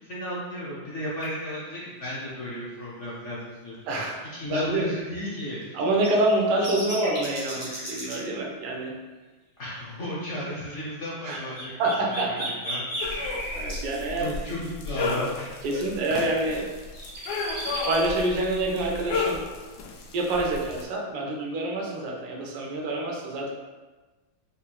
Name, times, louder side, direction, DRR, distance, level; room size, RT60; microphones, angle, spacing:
voice 1, 0.0-3.8 4.3-5.8 9.6-11.7 12.3-12.4 12.6-13.3 14.2-15.8, left 1 dB, 50° left, -7 dB, 0.9 m, -34 dB
sound 1, 1.2-1.3 5.2-5.3 6.0-8.2 11.3-13.8 14.9-15.0 15.4-15.5 16.7-17.9, equal, 15° right, 0.5 m, -34 dB
voice 2, 3.9-4.2 4.5-4.9 5.7-9.0 11.2-12.6 13.1-14.4 15.6-16.7 17.6-19.5 20.1-23.5, right 2 dB, 65° right, -1 dB, 1.1 m, -27 dB
sound 2, 13.0-20.8, left 4 dB, 80° left, 0.9 m, -33 dB
5.5 x 2.7 x 2.3 m, 1.2 s
omnidirectional pair, 2.2 m